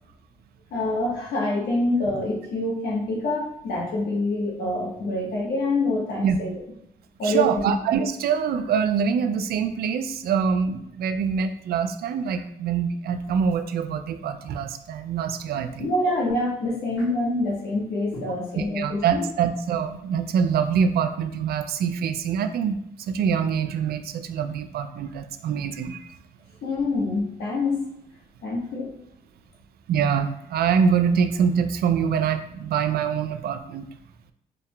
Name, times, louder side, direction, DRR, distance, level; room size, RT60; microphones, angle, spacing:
voice 1, 0.7-6.5 7.2-7.7 15.8-19.2 26.6-27.8 28.4-28.9, left 2 dB, 80° left, -3 dB, 1.2 m, -26 dB
voice 2, 7.2-15.9 18.6-22.8 23.1-26.1 29.9-33.9, right 7 dB, 75° right, 9 dB, 0.4 m, -24 dB
5.0 x 2.7 x 2.2 m, 0.74 s
cardioid pair, 80°, 16 cm